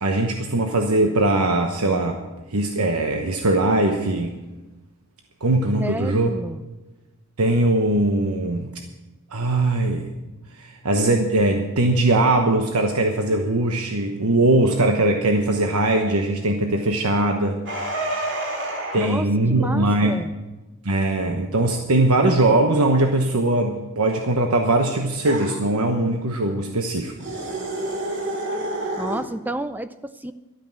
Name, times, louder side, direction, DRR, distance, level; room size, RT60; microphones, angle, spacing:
voice 1, 0.0-2.2 2.5-4.3 5.4-6.3 7.4-8.7 9.3-10.1 10.5-17.6 18.9-20.2 20.8-27.1, right 2 dB, 90° right, 4 dB, 1.1 m, -20 dB
voice 2, 5.8-6.6 19.0-20.3 29.0-30.3, right 1 dB, 10° right, 12 dB, 0.4 m, -30 dB
sound 1, 17.7-19.2 25.3-25.6 27.2-29.3, right 1 dB, 55° right, 2.6 m, -28 dB
13.0 x 9.2 x 7.3 m, 1.1 s
head